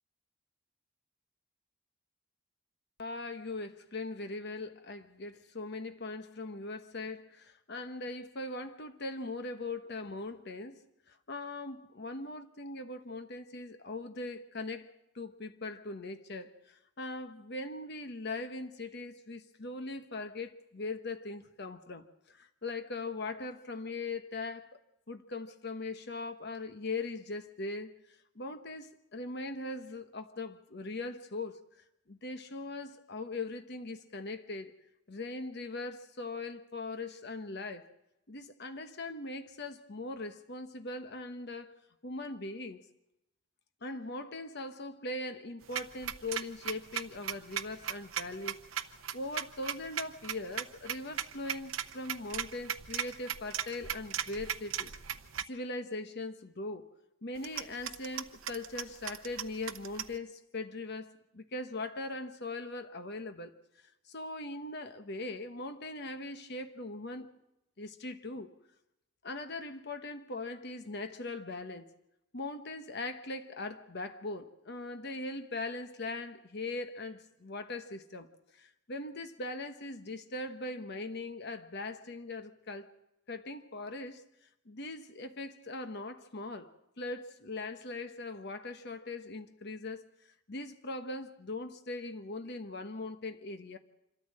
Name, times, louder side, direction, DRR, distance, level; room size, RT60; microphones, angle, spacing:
voice 1, 3.0-10.8 11.1-14.9 15.1-24.8 25.1-27.9 28.3-31.6 32.1-34.7 35.1-37.9 38.3-41.7 42.0-42.8 43.8-54.9 55.5-56.9 57.2-63.5 64.1-67.3 67.8-68.5 69.2-71.9 72.3-78.3 78.5-82.9 83.3-84.2 84.6-90.0 90.5-93.8, left 2 dB, 55° left, 1.1 m, -40 dB
sound 1, 45.6-55.4 57.4-60.2, right 9 dB, 80° right, 0.8 m, -38 dB
26.0 x 13.5 x 7.6 m
head